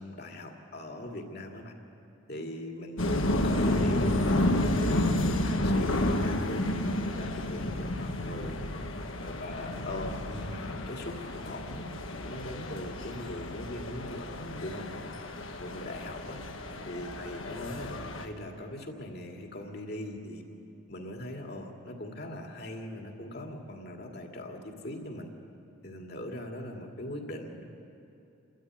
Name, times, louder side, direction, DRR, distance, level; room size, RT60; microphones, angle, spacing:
voice 1, 0.0-1.7 2.3-8.6 9.2-15.1 15.6-16.4 16.8-20.4 20.9-25.3 25.8-27.7, left 1 dB, 50° left, 2 dB, 2.3 m, -40 dB
sound 1, 3.0-18.3, left 1 dB, 75° left, 1.6 m, -31 dB
30.0 x 13.0 x 9.2 m, 2.8 s
head